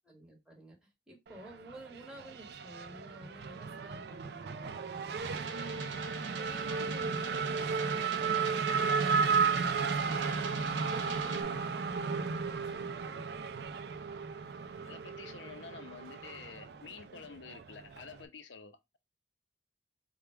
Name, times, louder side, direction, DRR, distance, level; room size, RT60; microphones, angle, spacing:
voice 1, 0.0-5.8 6.3-13.3, right 1 dB, 5° right, 1.2 m, -52 dB
Race car auto racing / Accelerating revving vroom, 1.3-18.3, right 5 dB, 60° right, 0.4 m, -34 dB
sound 1, 5.2-11.4, right 5 dB, 85° right, 0.9 m, -44 dB
voice 2, 14.6-19.0, left 5 dB, 85° left, 0.7 m, -49 dB
3.5 x 2.3 x 4.3 m
head